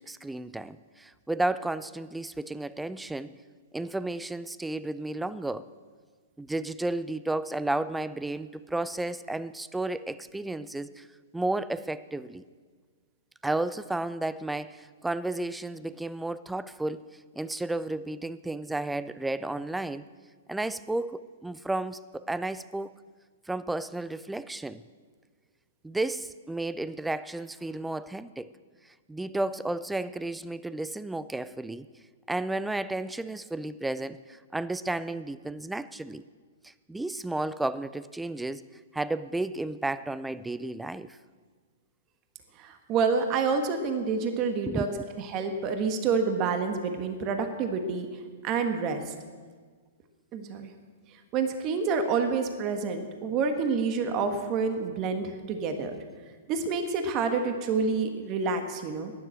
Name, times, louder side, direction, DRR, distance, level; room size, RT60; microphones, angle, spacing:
voice 1, 0.1-3.3 3.7-5.7 6.4-11.1 11.3-12.4 13.4-17.0 17.4-20.1 20.5-22.9 23.5-24.8 25.8-28.5 29.1-31.9 32.3-36.2 36.6-38.6 38.9-41.2 44.6-45.1, right 2 dB, 5° right, 16 dB, 0.4 m, -32 dB
voice 2, 42.5-44.9 45.2-49.1 50.3-50.7 51.1-56.0 56.5-59.1, right 5 dB, 35° right, 6 dB, 1.4 m, -28 dB
12.0 x 10.0 x 7.5 m, 1.5 s
hypercardioid pair, 125°, 0 cm